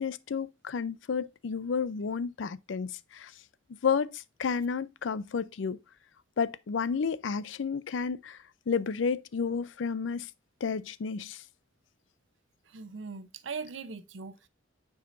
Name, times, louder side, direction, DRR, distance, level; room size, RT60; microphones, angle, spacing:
voice 1, 0.0-3.3 3.8-5.8 6.4-8.4 8.7-10.3 10.6-11.4, left 6 dB, 80° left, 0.5 m, -31 dB
voice 2, 12.7-14.5, right 5 dB, 80° right, 0.8 m, -40 dB
9.1 x 4.8 x 2.5 m
head